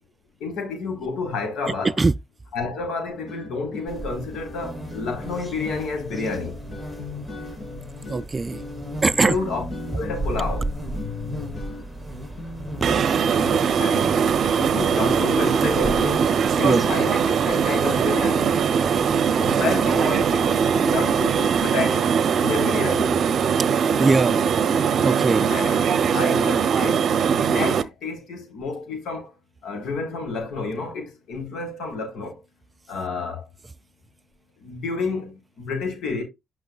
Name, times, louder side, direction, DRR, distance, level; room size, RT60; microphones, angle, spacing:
voice 1, 0.4-2.0 2.5-6.6 9.2-9.7 9.9-10.7 13.8-14.3 14.6-16.3 16.6-18.5 19.4-22.1 22.4-23.1 25.5-25.9 26.1-29.3 29.6-32.4 32.9-33.5 34.6-36.2, left 4 dB, 80° left, 3.8 m, -30 dB
sound 1, 3.2-15.5, left 3 dB, 45° left, 3.1 m, -38 dB
sound 2, 3.9-21.7, right 1 dB, 5° right, 4.1 m, -36 dB
voice 2, 8.1-8.6 9.0-9.3 12.8-13.0 16.6-16.8 24.0-24.4 25.0-25.5, right 3 dB, 25° right, 0.3 m, -20 dB
sound 3, 12.8-27.8, right 6 dB, 60° right, 0.7 m, -21 dB
9.0 x 6.1 x 2.3 m
cardioid pair, 90°, 0 cm